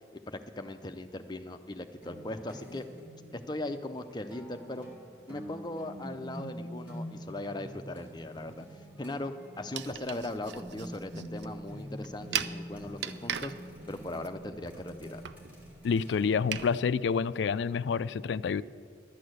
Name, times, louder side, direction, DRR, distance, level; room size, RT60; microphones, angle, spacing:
voice 1, 0.3-2.9 3.3-4.9 5.3-8.7 9.0-13.5 13.9-15.2, left 1 dB, 25° left, 7 dB, 0.6 m, -39 dB
sound 1, 2.0-16.8, equal, 10° right, 2.3 m, -46 dB
sound 2, 9.7-16.7, right 9 dB, 70° right, 0.5 m, -40 dB
voice 2, 15.8-18.6, left 6 dB, 70° left, 15 dB, 0.3 m, -28 dB
11.5 x 8.5 x 7.8 m, 2.1 s
head